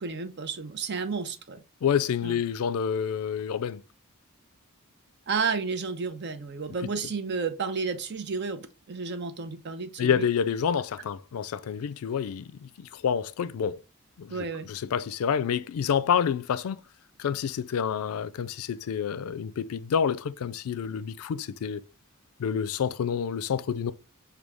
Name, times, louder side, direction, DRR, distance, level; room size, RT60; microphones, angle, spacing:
voice 1, 0.0-1.6 2.2-2.4 5.3-10.2 14.3-14.7, right 5 dB, 55° right, 0.6 m, -32 dB
voice 2, 1.8-3.8 10.0-13.8 14.2-16.8 17.2-21.8 22.4-23.9, left 7 dB, 80° left, 0.4 m, -28 dB
6.1 x 2.3 x 3.4 m
head